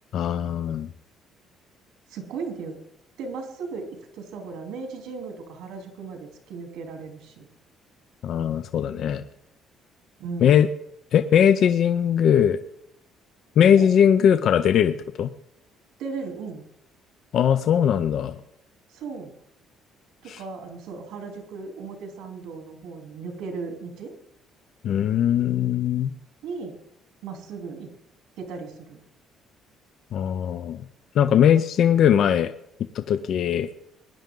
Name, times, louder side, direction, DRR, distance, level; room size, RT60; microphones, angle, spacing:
voice 1, 0.1-0.9 8.2-9.2 10.4-10.7 11.1-12.6 13.6-15.3 17.3-18.3 20.3-20.4 24.8-26.1 30.1-30.8 31.2-32.5 32.9-33.7, left 9 dB, 50° left, 11 dB, 0.5 m, -20 dB
voice 2, 2.1-2.8 3.2-7.5 10.2-10.7 13.8-13.9 16.0-16.6 18.9-19.3 20.2-24.1 26.4-26.7 27.2-27.9 28.4-29.0, right 4 dB, 85° right, 3 dB, 3.1 m, -36 dB
20.0 x 10.5 x 3.8 m, 0.79 s
cardioid pair, 165°, 0 cm